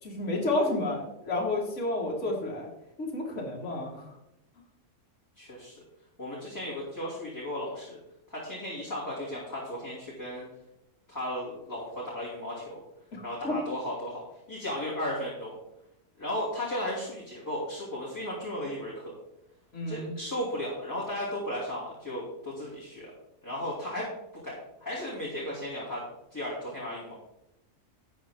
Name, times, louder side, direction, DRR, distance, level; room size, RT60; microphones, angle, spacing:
voice 1, 0.0-2.7 3.0-4.1 13.1-13.6 19.7-20.1, left 2 dB, 50° left, -2 dB, 2.4 m, -31 dB
voice 2, 5.4-5.8 6.2-8.0 8.3-10.4 11.1-12.8 13.2-15.6 16.2-19.1 19.9-23.1 23.4-24.1 24.4-26.0 26.3-27.1, left 1 dB, 10° left, -7 dB, 2.7 m, -35 dB
12.5 x 7.9 x 3.6 m, 0.84 s
omnidirectional pair, 1.5 m